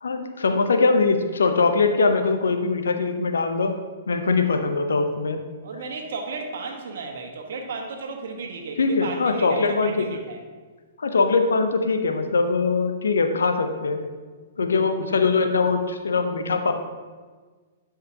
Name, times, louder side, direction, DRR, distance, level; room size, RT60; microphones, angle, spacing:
voice 1, 0.0-3.7 4.1-5.4 8.8-10.1 11.0-14.0 14.6-16.7, left 4 dB, 85° left, 6 dB, 0.7 m, -22 dB
voice 2, 5.6-10.4, right 4 dB, 70° right, 3 dB, 1.2 m, -34 dB
10.5 x 4.9 x 2.9 m, 1.4 s
hypercardioid pair, 120°, 0 cm